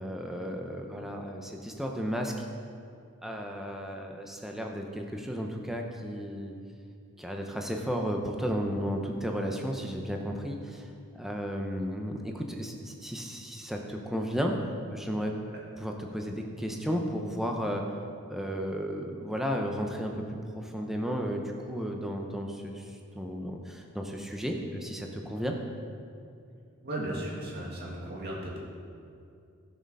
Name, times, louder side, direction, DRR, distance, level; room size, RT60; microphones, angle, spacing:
voice 1, 0.0-2.4 3.2-6.5 7.2-10.9 11.1-14.5 14.9-15.3 15.8-17.8 18.3-22.9 23.1-25.5, equal, ahead, 1 dB, 0.8 m, -33 dB
voice 2, 26.8-28.6, right 1 dB, 45° right, -3 dB, 2.2 m, -36 dB
13.0 x 6.5 x 5.5 m, 2.4 s
head